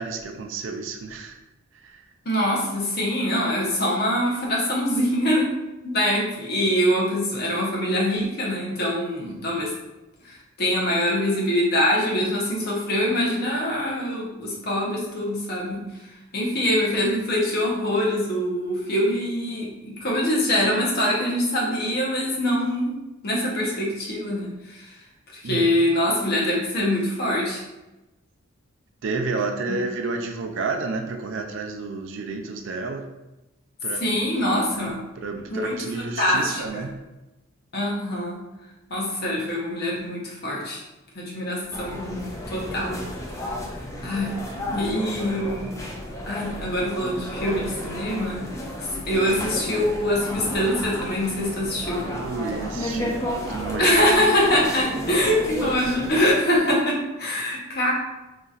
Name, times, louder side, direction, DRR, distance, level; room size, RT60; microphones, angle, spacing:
voice 1, 0.0-1.4 1.7-2.0 9.2-9.6 25.4-25.7 29.0-33.1 33.8-36.9 52.0-54.0, right 3 dB, 60° right, 4 dB, 0.4 m, -31 dB
voice 2, 2.3-5.5 5.8-9.7 10.6-15.8 16.3-22.9 23.2-24.8 25.3-27.6 34.0-35.0 35.5-35.7 36.2-36.8 37.7-38.4 38.9-40.8 41.1-42.2 42.5-43.0 44.0-44.3 44.7-45.8 46.3-48.4 49.1-52.0 53.8-57.9, left 1 dB, 45° left, -3 dB, 0.8 m, -24 dB
sound 1, 41.7-56.3, left 1 dB, 15° left, 0.3 m, -32 dB
4.0 x 2.9 x 2.4 m, 1.0 s
head